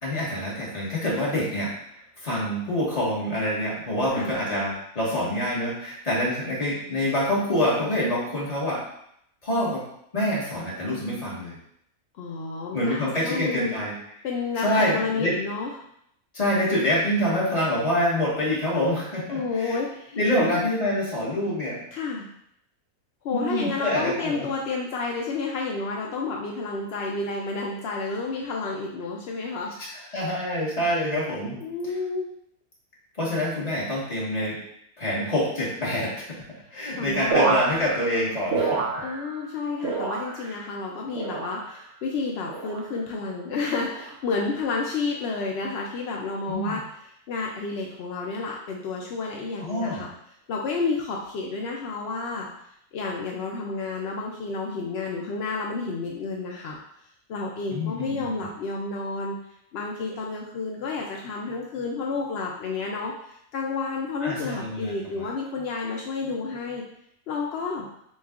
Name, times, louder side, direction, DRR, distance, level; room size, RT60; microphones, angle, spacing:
voice 1, 0.0-1.7 2.2-8.8 9.4-9.8 10.1-11.6 12.7-13.9 14.6-15.4 16.3-19.8 20.1-21.8 23.3-24.5 30.1-31.6 33.1-34.6 35.0-36.4 36.7-38.9 46.5-46.7 49.6-50.1 57.7-58.1 64.2-65.3, left 1 dB, 25° left, -6 dB, 1.2 m, -26 dB
voice 2, 12.1-13.8 14.2-15.8 19.3-20.6 21.9-22.3 23.2-29.7 31.6-32.3 37.0-37.6 39.0-46.8 47.3-50.1 50.5-52.5 52.9-56.8 57.3-59.4 59.7-66.8 67.3-67.9, left 4 dB, 75° left, -1 dB, 0.6 m, -30 dB
sound 1, 37.3-39.5 39.8-40.7 41.1-41.8 42.5-42.9 43.8-44.2 45.1-45.4, right 4 dB, 60° right, 0.8 m, -28 dB
7.0 x 2.4 x 2.4 m, 0.72 s
omnidirectional pair, 1.6 m